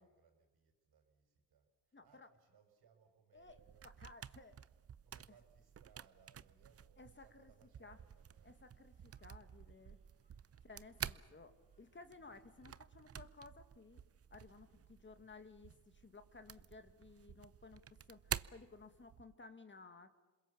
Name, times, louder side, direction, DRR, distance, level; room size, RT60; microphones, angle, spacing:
voice 1, 0.0-3.9 5.0-8.5 8.9-9.3 15.0-15.2, right 7 dB, 65° right, 5 dB, 5.7 m, -70 dB
voice 2, 1.9-2.3 3.3-4.6 7.0-7.5 7.8-8.0 8.4-10.0 10.6-14.0 14.3-20.1, left 3 dB, 30° left, 7 dB, 2.0 m, -57 dB
sound 1, 3.4-19.4, right 8 dB, 35° right, 0.7 m, -50 dB
sound 2, 7.8-13.4, right 1 dB, 15° right, 4.2 m, -79 dB
28.0 x 21.5 x 7.2 m, 1.2 s
supercardioid pair, 70°, 40 cm